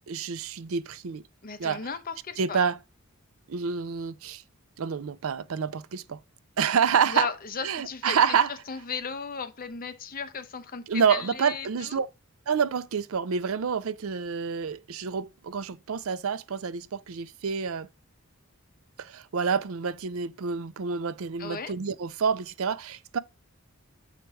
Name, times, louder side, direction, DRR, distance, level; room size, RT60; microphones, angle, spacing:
voice 1, 0.1-1.2 1.6-1.8 2.4-2.8 3.5-4.4 4.8-6.2 6.6-7.3 7.6-8.5 10.9-12.1 12.5-17.9 19.0-23.2, right 6 dB, 70° right, 0.5 m, -28 dB
voice 2, 1.4-2.6 7.1-12.0 21.4-21.7, left 6 dB, 40° left, 0.7 m, -36 dB
6.6 x 4.6 x 4.7 m
head